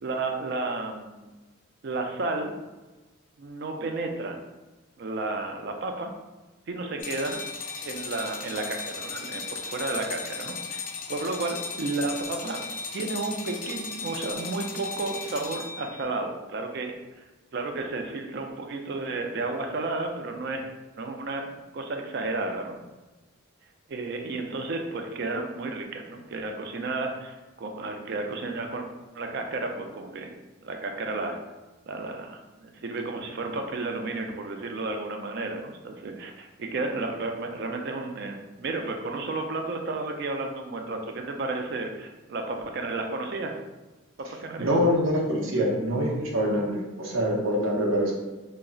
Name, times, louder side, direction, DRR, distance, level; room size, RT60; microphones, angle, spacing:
voice 1, 0.0-1.3 1.8-2.5 3.4-4.4 5.0-6.1 6.7-7.4 7.8-12.6 12.9-17.2 17.5-20.7 21.0-21.4 21.7-22.8 23.9-28.9 29.1-30.3 30.6-31.4 31.9-43.5 44.4-44.7, right 3 dB, 50° right, 4 dB, 0.3 m, -32 dB
sound 1, 7.0-16.0, left 5 dB, 40° left, 0.3 m, -36 dB
voice 2, 44.6-48.1, equal, 75° right, -2 dB, 0.7 m, -25 dB
2.3 x 2.0 x 3.6 m, 1.2 s
head